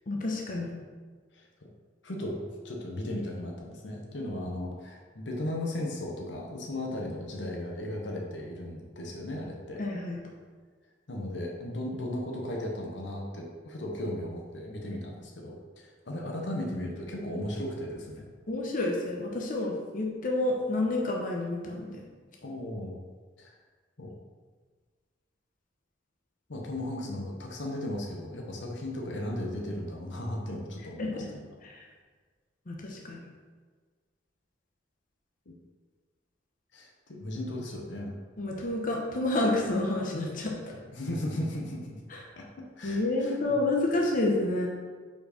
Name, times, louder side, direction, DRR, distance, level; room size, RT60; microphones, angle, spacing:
voice 1, 0.1-0.7 9.8-10.2 18.5-22.0 31.0-31.3 31.6-31.8 32.7-33.2 38.4-40.8 42.1-42.2 42.8-44.7, left 2 dB, 45° left, -1 dB, 0.9 m, -29 dB
voice 2, 2.0-9.8 11.1-18.3 22.4-23.0 23.4-23.5 24.0-24.2 26.5-31.4 35.5-35.6 36.7-38.1 38.6-38.7 40.9-42.0 42.3-42.5 42.8-43.6, left 1 dB, 70° left, 0 dB, 0.9 m, -36 dB
5.4 x 4.5 x 5.0 m, 1.5 s
head